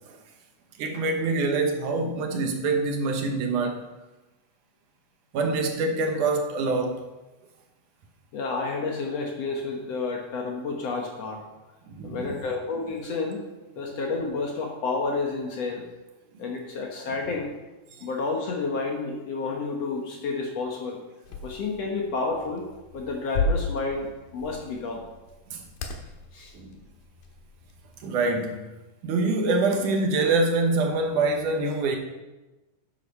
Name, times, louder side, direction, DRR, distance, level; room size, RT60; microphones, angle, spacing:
voice 1, 0.8-3.9 5.3-7.1 11.9-12.4 25.5-25.6 26.5-26.7 28.0-28.7 29.0-32.0, right 3 dB, 70° right, 3 dB, 2.6 m, -25 dB
voice 2, 8.3-11.4 12.0-13.4 13.8-15.9 16.4-17.5 18.0-21.0 21.4-22.7 22.9-25.1 26.3-26.5, left 3 dB, 60° left, 1 dB, 2.0 m, -30 dB
sound 1, 21.2-28.3, left 3 dB, 90° left, 2.9 m, -35 dB
10.5 x 8.2 x 5.6 m, 1.1 s
omnidirectional pair, 3.9 m